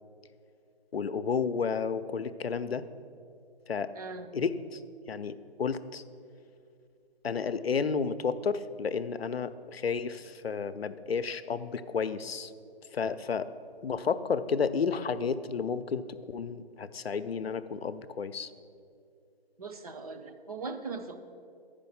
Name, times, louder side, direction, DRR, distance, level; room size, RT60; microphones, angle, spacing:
voice 1, 0.9-2.8 3.7-3.9 4.3-4.8 5.1-6.0 7.2-12.5 12.9-13.5 13.8-18.5, left 5 dB, 75° left, 12 dB, 0.6 m, -31 dB
voice 2, 4.0-4.3 19.6-21.2, right 4 dB, 35° right, 5 dB, 0.6 m, -39 dB
10.5 x 5.2 x 7.0 m, 2.4 s
figure-of-eight pair, 150°, 31 cm